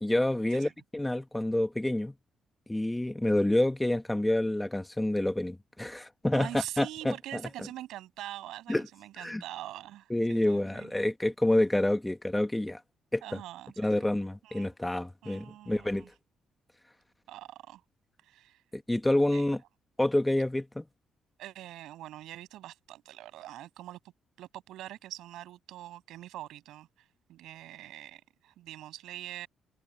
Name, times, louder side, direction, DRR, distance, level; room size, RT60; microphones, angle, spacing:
voice 1, 0.0-2.1 2.7-7.4 8.7-8.8 9.2-9.4 10.1-12.8 13.1-13.2 13.8-16.0 18.7-19.6 20.0-20.8, left 1 dB, 10° left, 1.4 m, -28 dB
voice 2, 6.3-10.9 13.2-14.1 14.4-14.7 15.2-16.1 17.3-17.8 18.2-18.6 19.3-19.4 21.4-24.0 24.4-29.5, right 14 dB, 85° right, 7.5 m, -44 dB
cardioid pair, 90°, 0 cm